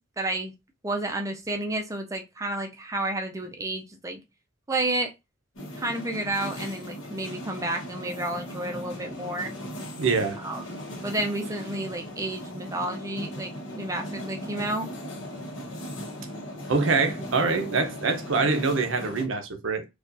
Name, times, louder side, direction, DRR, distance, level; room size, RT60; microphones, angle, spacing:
voice 1, 0.2-0.5 0.8-4.2 4.7-5.1 5.8-9.5 10.4-10.8 11.0-14.9, right 2 dB, 15° right, 0.5 m, -31 dB
sound 1, 5.6-19.3, equal, 70° left, 1.2 m, -38 dB
voice 2, 10.0-10.4 16.7-19.8, right 4 dB, 70° right, 0.7 m, -25 dB
4.4 x 2.4 x 2.6 m
head